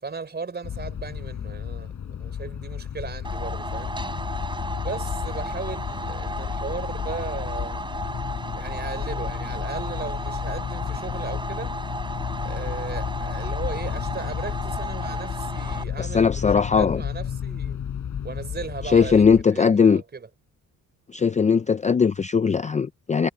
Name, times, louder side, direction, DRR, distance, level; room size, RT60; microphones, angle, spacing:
voice 1, 0.0-3.9 4.8-7.8 8.5-11.8 12.4-17.8 18.2-20.3, right 4 dB, 30° right, 4.5 m, -36 dB
sound 1, 0.6-19.4, left 8 dB, 60° left, 6.6 m, -32 dB
sound 2, 3.2-15.8, right 2 dB, 15° right, 4.5 m, -35 dB
voice 2, 16.0-17.0 18.9-20.0 21.1-23.3, left 6 dB, 20° left, 0.4 m, -19 dB
cardioid pair, 140°, 33 cm